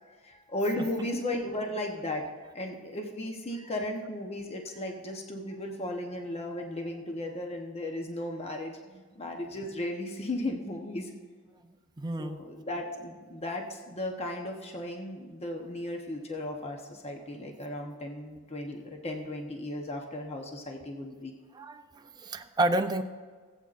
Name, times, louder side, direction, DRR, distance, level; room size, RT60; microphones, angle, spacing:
voice 1, 0.0-2.2 2.5-8.8 9.2-11.1 12.2-21.3, left 1 dB, 30° left, 2 dB, 0.9 m, -35 dB
voice 2, 12.0-12.4 21.5-23.0, right 1 dB, 20° right, 7 dB, 0.5 m, -30 dB
19.0 x 8.2 x 2.5 m, 1.5 s
head